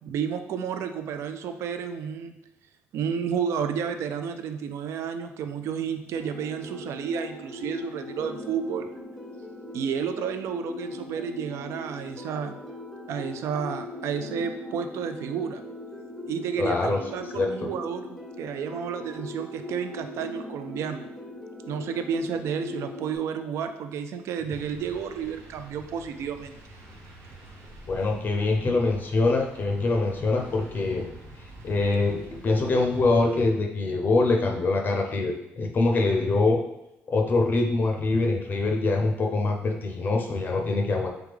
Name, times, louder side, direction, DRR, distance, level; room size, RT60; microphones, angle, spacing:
voice 1, 0.0-2.3 2.9-8.9 9.7-12.5 13.1-15.6 16.3-18.1 18.4-21.0 21.7-26.6, right 7 dB, 75° right, 8 dB, 0.3 m, -31 dB
sound 1, 6.2-23.2, left 2 dB, 5° right, 0.7 m, -40 dB
voice 2, 16.6-17.7 27.9-31.1 31.4-36.6 37.1-41.1, left 3 dB, 40° left, 2 dB, 0.5 m, -24 dB
sound 2, 24.5-33.4, right 1 dB, 90° right, 0.8 m, -46 dB
3.5 x 3.4 x 3.3 m, 0.87 s
cardioid pair, 110°, 5 cm